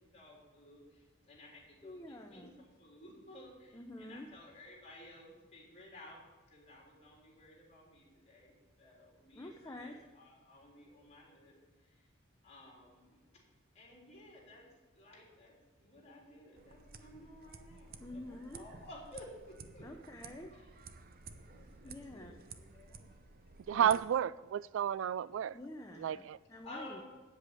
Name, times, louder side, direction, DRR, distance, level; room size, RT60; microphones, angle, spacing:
voice 1, 0.0-12.1 12.4-13.4 13.7-19.9 20.5-20.7 21.3-23.0 26.6-27.0, left 1 dB, 35° left, 3.7 m, -55 dB
voice 2, 1.8-2.5 3.7-4.3 9.3-10.0 18.0-18.6 19.8-20.5 21.8-22.3 23.7-24.0 25.5-26.2 26.5-27.0, left 1 dB, 15° left, 0.6 m, -48 dB
sound 1, 16.6-24.0, right 5 dB, 45° right, 0.7 m, -53 dB
voice 3, 23.7-25.6 26.0-26.4, right 9 dB, 65° right, 0.3 m, -31 dB
8.5 x 8.0 x 8.4 m
head